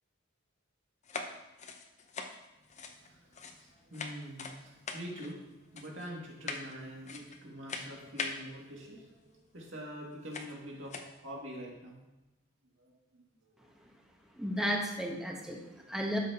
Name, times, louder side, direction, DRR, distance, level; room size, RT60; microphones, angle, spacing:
sound 1, 1.0-3.7 3.9-4.6 4.9-5.3 5.8-6.1 6.4-6.8 7.1-7.4 7.7-8.4 9.6-9.7 10.3-10.5 10.9-11.2, left 4 dB, 35° left, 0.6 m, -41 dB
voice 1, 3.0-11.0 11.2-12.0 12.8-13.2 13.5-13.6, equal, 65° right, -3 dB, 2.2 m, -45 dB
voice 2, 14.3-16.2, equal, 5° right, 0 dB, 1.0 m, -34 dB
12.5 x 5.7 x 2.9 m, 0.98 s
head